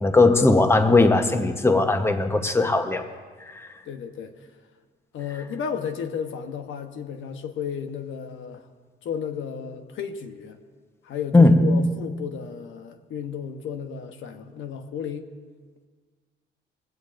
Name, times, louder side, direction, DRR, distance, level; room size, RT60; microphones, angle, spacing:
voice 1, 0.0-3.1 3.4-3.7 11.3-11.9, left 2 dB, 10° left, 7 dB, 1.0 m, -18 dB
voice 2, 3.8-4.5 5.1-8.7 9.0-10.6 11.0-15.3, left 7 dB, 75° left, 6 dB, 1.1 m, -33 dB
21.0 x 16.0 x 2.6 m, 1.5 s
cardioid pair, 90°, 20 cm